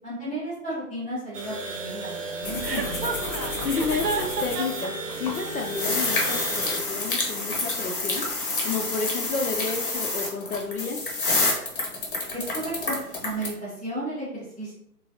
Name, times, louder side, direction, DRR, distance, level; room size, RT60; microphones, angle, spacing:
voice 1, 0.0-3.3 12.3-13.0 13.2-14.7, right 1 dB, 5° right, -24 dB, 0.5 m, -33 dB
sound 1, 1.3-6.8, right 2 dB, 55° right, 0.7 m, -35 dB
sound 2, 2.4-4.8 5.1-13.5, left 2 dB, 35° left, 0.8 m, -29 dB
Chuckle chortle, 2.6-4.9, right 5 dB, 90° right, 0.7 m, -30 dB
voice 2, 3.6-8.3 8.6-11.0, left 4 dB, 70° left, 3 dB, 0.6 m, -31 dB
3.3 x 3.1 x 2.7 m, 0.79 s
hypercardioid pair, 150°, 47 cm